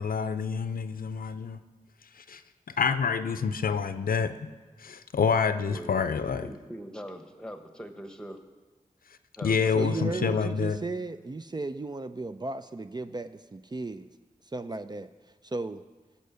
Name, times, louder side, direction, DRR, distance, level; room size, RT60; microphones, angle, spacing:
voice 1, 0.0-1.6 2.2-2.4 2.8-4.3 4.8-6.5 9.4-10.8, left 6 dB, 80° left, 11 dB, 0.6 m, -27 dB
voice 2, 5.7-6.0 6.4-8.4 9.4-10.5, equal, 5° left, 6 dB, 1.3 m, -42 dB
voice 3, 9.7-14.1 14.5-15.1 15.4-15.8, right 3 dB, 30° right, 10 dB, 0.5 m, -35 dB
16.0 x 5.6 x 6.9 m, 1.3 s
wide cardioid pair, 60°, 15 cm